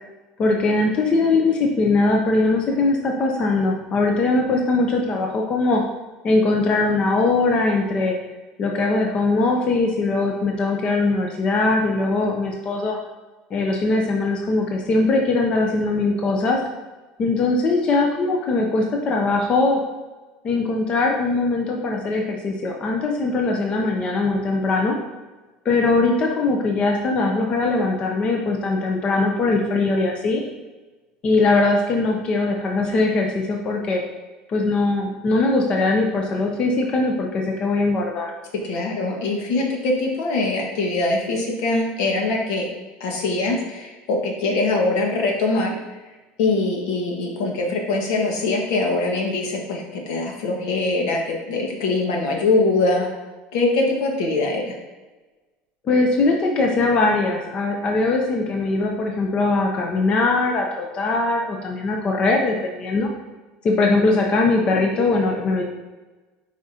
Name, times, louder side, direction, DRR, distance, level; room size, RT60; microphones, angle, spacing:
voice 1, 0.4-5.8 6.2-8.1 8.6-13.0 13.5-16.6 17.2-19.8 20.4-25.0 25.6-30.4 31.2-34.0 34.5-38.3 55.8-63.1 63.6-65.6, left 3 dB, 30° left, 1 dB, 0.6 m, -21 dB
voice 2, 38.6-42.7 43.0-45.7 46.4-53.1 53.5-54.7, left 2 dB, 75° left, 0 dB, 1.5 m, -22 dB
7.7 x 4.9 x 2.8 m, 1.2 s
cardioid pair, 165°, 4 cm